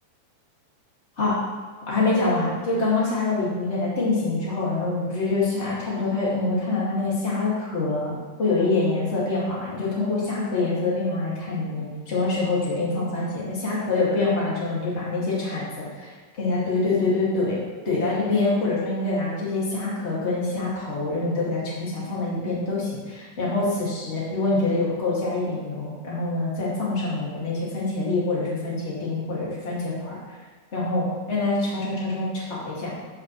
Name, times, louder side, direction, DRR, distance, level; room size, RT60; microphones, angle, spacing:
voice 1, 1.9-30.2 30.7-33.0, left 3 dB, 45° left, -7 dB, 0.8 m, -25 dB
13.5 x 5.7 x 3.2 m, 1.6 s
omnidirectional pair, 5.3 m